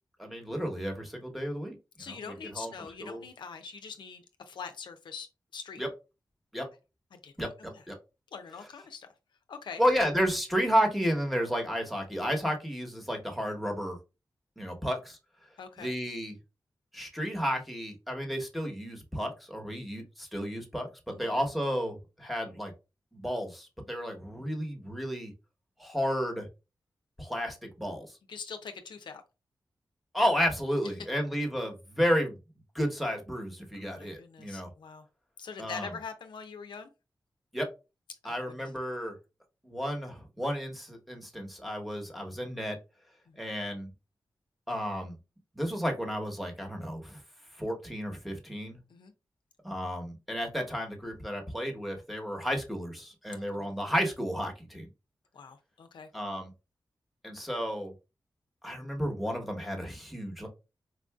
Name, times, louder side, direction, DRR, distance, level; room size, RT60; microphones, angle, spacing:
voice 1, 0.2-2.7 3.0-3.2 5.8-5.9 6.5-6.7 7.4-8.0 9.8-14.0 14.6-15.2 15.8-16.3 16.9-22.7 23.1-25.3 25.8-26.5 27.2-28.1 30.1-32.4 32.7-34.7 35.6-35.9 37.5-37.7 38.2-39.1 39.6-42.8 43.4-43.9 44.7-45.2 45.5-47.2 47.6-48.8 49.6-54.9 56.1-56.5 57.2-57.9 58.6-60.5, equal, ahead, 2 dB, 1.1 m, -32 dB
voice 2, 2.0-5.8 7.1-7.8 8.3-9.1 9.5-10.1 15.6-15.9 21.1-21.3 28.3-29.2 33.7-35.0 35.4-36.9 38.2-38.6 43.3-43.4 48.9-49.1 53.3-53.7 55.3-56.1, left 5 dB, 85° left, 7 dB, 0.5 m, -44 dB
4.4 x 2.5 x 2.3 m, 0.28 s
cardioid pair, 65°, 8 cm